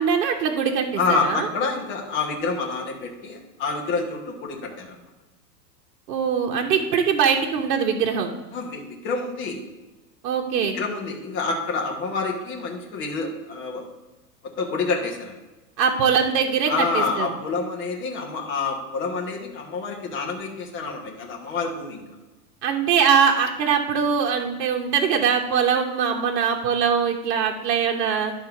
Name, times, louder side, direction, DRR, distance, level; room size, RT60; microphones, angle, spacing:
voice 1, 0.0-1.5 6.1-8.3 10.2-10.8 15.8-17.3 22.6-28.3, right 7 dB, 70° right, 2 dB, 1.1 m, -22 dB
voice 2, 1.0-4.9 8.5-9.6 10.7-13.8 14.6-15.3 16.7-22.0, left 4 dB, 20° left, 0 dB, 1.0 m, -27 dB
11.0 x 3.7 x 5.9 m, 1.1 s
supercardioid pair, 170°, 49 cm